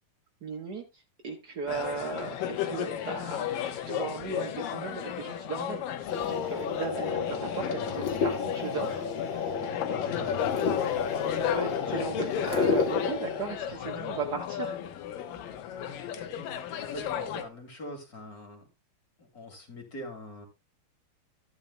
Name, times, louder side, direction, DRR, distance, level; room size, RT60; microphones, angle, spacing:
voice 1, 0.4-3.4 3.9-9.6 11.5-14.8, right 4 dB, 80° right, 1 dB, 0.9 m, -37 dB
sound 1, 1.7-17.4, left 9 dB, 80° left, 2.7 m, -34 dB
sound 2, 6.1-13.4, left 5 dB, 60° left, 1.3 m, -31 dB
voice 2, 7.3-8.0 10.0-10.6 16.2-16.5 16.8-18.7 19.2-20.5, left 1 dB, 30° left, 4 dB, 2.6 m, -43 dB
13.0 x 11.0 x 2.3 m, 0.25 s
omnidirectional pair, 3.9 m